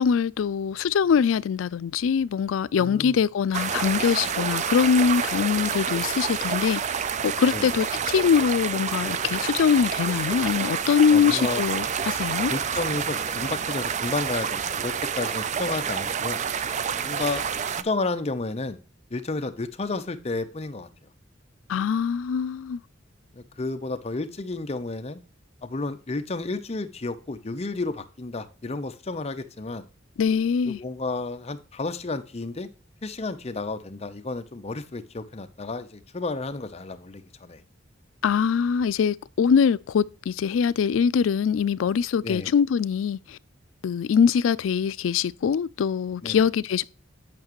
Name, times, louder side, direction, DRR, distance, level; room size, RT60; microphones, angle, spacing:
voice 1, 0.0-12.5 21.7-22.8 30.2-30.8 38.2-43.4 43.8-46.8, left 7 dB, 90° left, 0.4 m, -23 dB
voice 2, 2.7-3.2 7.5-7.7 11.1-11.6 12.5-16.4 17.0-17.4 17.8-18.8 19.1-20.9 23.3-25.2 25.6-29.9 30.6-32.7 33.0-37.6 42.2-42.5 46.2-46.4, left 3 dB, 35° left, 0.6 m, -31 dB
sound 1, 3.5-17.8, right 7 dB, 40° right, 0.4 m, -28 dB
8.8 x 5.8 x 3.0 m
head